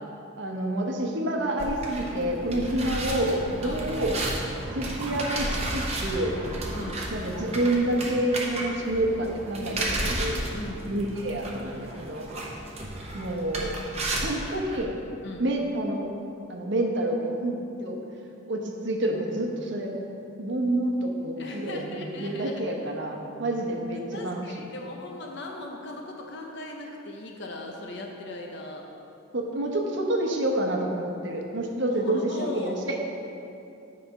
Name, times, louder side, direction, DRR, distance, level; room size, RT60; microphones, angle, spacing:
voice 1, 0.4-4.2 4.7-6.4 7.1-10.5 10.9-12.3 13.1-13.7 14.2-14.9 15.4-16.1 16.5-18.0 18.5-20.0 20.4-24.6 29.3-33.0, right 1 dB, 60° right, 1 dB, 0.9 m, -28 dB
sound 1, 1.6-14.8, right 1 dB, 30° right, 0.9 m, -33 dB
voice 2, 6.7-7.1 10.5-10.9 15.2-15.5 21.4-22.6 24.1-28.9 31.9-32.9, left 2 dB, 60° left, 1 dB, 0.7 m, -38 dB
8.2 x 4.2 x 5.4 m, 2.7 s
head